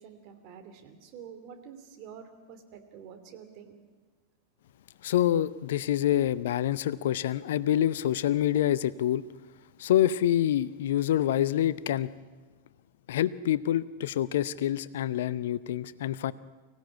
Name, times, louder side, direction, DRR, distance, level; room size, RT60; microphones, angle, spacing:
voice 1, 0.0-3.8, right 7 dB, 40° right, 6 dB, 3.0 m, -48 dB
voice 2, 5.0-9.2 9.8-12.1 13.1-16.3, left 11 dB, 55° left, 18 dB, 0.6 m, -26 dB
24.5 x 16.5 x 9.7 m, 1.4 s
figure-of-eight pair, 90°, 0 cm